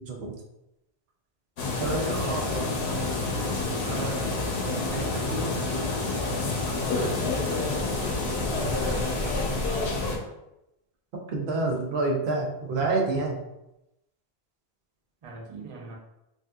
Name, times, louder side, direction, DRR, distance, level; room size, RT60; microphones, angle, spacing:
voice 1, 0.0-0.3 1.8-2.0 11.3-13.4, right 3 dB, 80° right, 0 dB, 0.9 m, -27 dB
sound 1, 1.6-10.2, left 3 dB, 85° left, 0.9 m, -28 dB
voice 2, 1.7-5.7 6.0-9.9 15.2-16.0, right 3 dB, 40° right, -2 dB, 0.5 m, -39 dB
3.4 x 2.5 x 2.3 m, 0.89 s
omnidirectional pair, 1.1 m